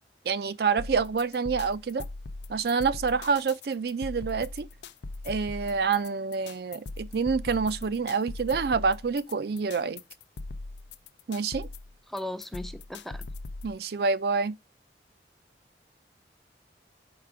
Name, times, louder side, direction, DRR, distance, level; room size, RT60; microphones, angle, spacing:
voice 1, 0.3-2.0 2.5-4.7 5.2-10.0 11.3-11.7 13.6-14.5, right 5 dB, 60° right, 0.4 m, -27 dB
sound 1, 0.8-13.8, left 2 dB, 80° left, 0.5 m, -40 dB
voice 2, 12.1-13.3, left 1 dB, ahead, 0.4 m, -37 dB
5.7 x 4.8 x 3.5 m
head